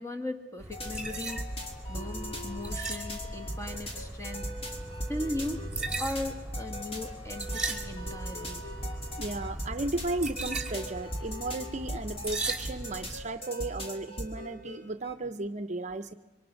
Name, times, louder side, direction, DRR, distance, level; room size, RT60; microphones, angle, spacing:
voice 1, 0.0-1.4 1.9-4.5 5.1-5.7 6.0-8.7, left 1 dB, 15° left, 5 dB, 2.2 m, -37 dB
sound 1, 0.6-13.3, right 2 dB, 5° right, 3.1 m, -38 dB
sound 2, 0.7-15.1, equal, 35° left, 2.7 m, -39 dB
voice 2, 9.2-16.1, right 2 dB, 40° right, 10 dB, 0.8 m, -35 dB
25.5 x 24.5 x 6.5 m, 1.1 s
head